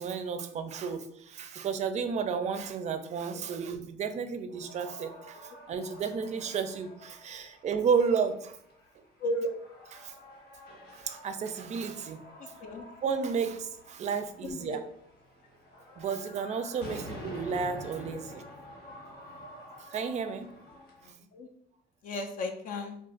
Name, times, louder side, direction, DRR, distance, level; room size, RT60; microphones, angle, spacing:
voice 1, 0.0-8.6 10.0-10.1 10.9-12.2 13.0-14.8 16.0-18.4 19.9-20.5, right 6 dB, 45° right, 9 dB, 0.4 m, -32 dB
sound 1, 4.5-21.1, left 1 dB, 90° left, 1.3 m, -49 dB
voice 2, 9.2-9.5 12.6-12.8 14.4-14.8 21.0-21.5 22.0-23.0, left 1 dB, 55° left, 4 dB, 0.4 m, -34 dB
2.4 x 2.3 x 3.7 m, 0.71 s
cardioid pair, 110°, 17 cm